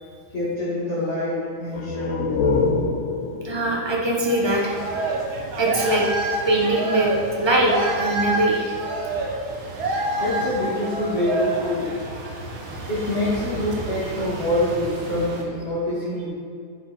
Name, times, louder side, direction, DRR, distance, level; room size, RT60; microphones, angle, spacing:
voice 1, 0.3-2.3 10.2-11.9 12.9-16.3, left 1 dB, 30° left, -12 dB, 2.4 m, -25 dB
sound 1, 1.7-5.2, left 4 dB, 75° left, 0.7 m, -26 dB
voice 2, 3.4-4.8 5.6-6.0 6.4-7.1 7.4-8.7, right 1 dB, 20° right, -2 dB, 0.9 m, -21 dB
sound 2, 4.3-15.4, right 2 dB, 90° right, 1.9 m, -28 dB
9.3 x 5.9 x 4.3 m, 2.3 s
omnidirectional pair, 2.2 m